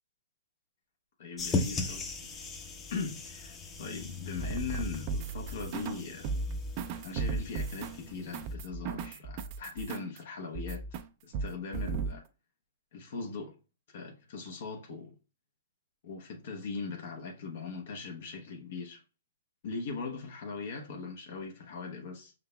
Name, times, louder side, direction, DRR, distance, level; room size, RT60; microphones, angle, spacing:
voice 1, 1.2-2.1 2.9-6.3 7.0-10.9 11.2-12.2 12.9-13.6 13.9-15.2 16.0-19.0 19.6-22.3, left 4 dB, 60° left, 0.8 m, -40 dB
sound 1, 1.4-8.5, left 4 dB, 20° left, 0.7 m, -38 dB
sound 2, 4.4-6.0 6.2-10.2 10.5-11.0 11.3-12.2, right 4 dB, 40° right, 0.4 m, -36 dB
5.4 x 3.8 x 2.3 m
hypercardioid pair, 120°, 0 cm